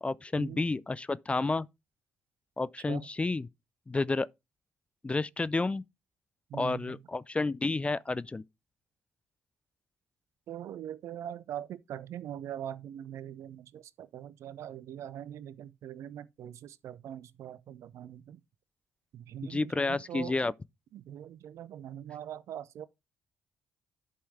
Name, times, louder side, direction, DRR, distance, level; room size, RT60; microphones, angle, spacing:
voice 1, 0.0-1.7 2.6-3.5 3.9-4.3 5.0-5.8 6.5-8.4 19.4-20.5, left 3 dB, 20° left, 0.4 m, -30 dB
voice 2, 6.5-7.0 10.5-18.4 19.1-20.4 20.9-22.9, right 10 dB, 60° right, 0.6 m, -42 dB
11.5 x 5.5 x 3.3 m
figure-of-eight pair, 40°, 6 cm